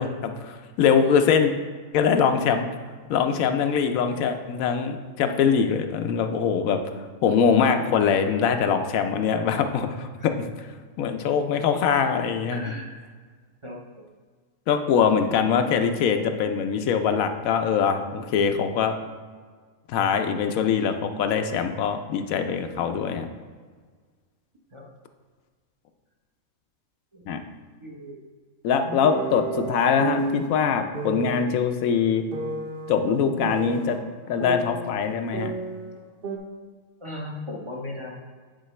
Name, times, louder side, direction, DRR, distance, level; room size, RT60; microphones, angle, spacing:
voice 1, 0.0-1.5 1.9-2.7 3.1-6.8 7.2-10.5 11.0-12.7 14.7-19.0 19.9-23.3 27.3-27.4 28.6-32.2 32.9-34.0 34.3-35.5, left 6 dB, 90° left, 7 dB, 1.0 m, -23 dB
voice 2, 12.5-12.9 13.6-13.8 24.7-24.9 27.1-27.4 27.8-28.2 28.7-29.1 37.0-38.1, left 1 dB, 30° right, -2 dB, 0.7 m, -37 dB
sound 1, 29.0-30.5 30.9-31.5 32.3-34.0 34.4-36.0 36.2-36.4, right 3 dB, 45° right, 1.0 m, -31 dB
8.7 x 4.6 x 3.2 m, 1.5 s
omnidirectional pair, 1.4 m